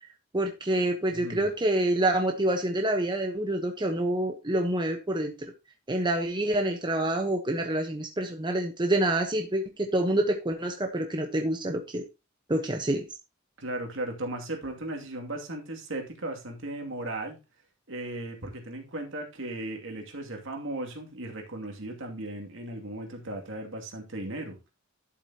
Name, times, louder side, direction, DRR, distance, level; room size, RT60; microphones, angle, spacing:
voice 1, 0.3-5.3 5.9-12.0 12.5-13.0, right 1 dB, 20° right, 1.1 m, -27 dB
voice 2, 1.1-1.5 13.6-17.4 17.9-24.6, right 1 dB, 65° right, 2.5 m, -36 dB
12.0 x 7.5 x 2.9 m
head